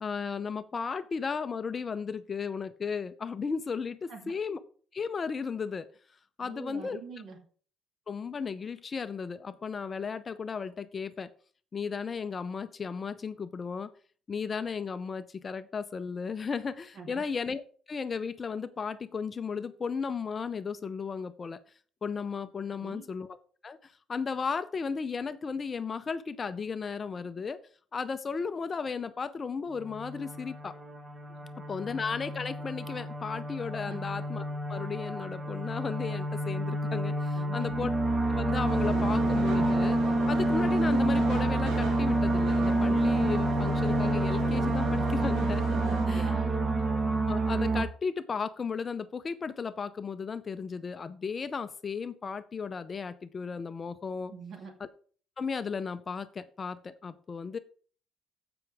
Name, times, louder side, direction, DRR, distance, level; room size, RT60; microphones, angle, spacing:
voice 1, 0.0-4.6 4.9-5.9 6.4-7.0 8.1-11.3 11.7-13.9 14.3-17.6 17.9-21.6 22.0-23.4 23.6-27.6 27.9-30.8 31.7-37.9 38.3-40.0 40.3-45.6 46.1-46.4 47.3-54.3 55.4-57.6, left 5 dB, 30° left, 12 dB, 0.5 m, -35 dB
voice 2, 6.4-7.4 16.9-17.2 22.8-23.1 33.9-34.1 37.3-37.7 45.8-46.6 54.3-54.7, right 5 dB, 50° right, 2 dB, 2.9 m, -44 dB
sound 1, 29.8-47.9, right 1 dB, 15° right, 1.3 m, -28 dB
sound 2, 38.6-46.0, right 4 dB, 90° right, 4.9 m, -39 dB
15.0 x 5.8 x 3.5 m, 0.44 s
cardioid pair, 135°, 0 cm